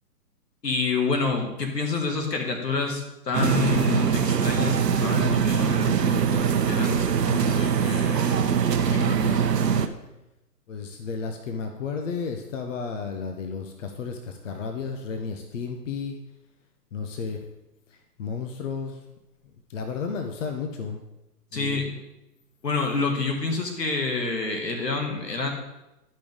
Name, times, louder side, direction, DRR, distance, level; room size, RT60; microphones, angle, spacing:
voice 1, 0.6-8.5 8.9-9.4 21.5-21.9 22.6-25.5, left 4 dB, 85° left, 3 dB, 2.0 m, -28 dB
sound 1, 3.3-9.9, right 7 dB, 85° right, 0.8 m, -22 dB
voice 2, 10.7-16.2 16.9-17.4 17.9-19.0 19.7-21.0 21.5-21.9, left 5 dB, 50° left, 5 dB, 0.9 m, -33 dB
11.5 x 5.4 x 3.6 m, 0.94 s
hypercardioid pair, 140°, 48 cm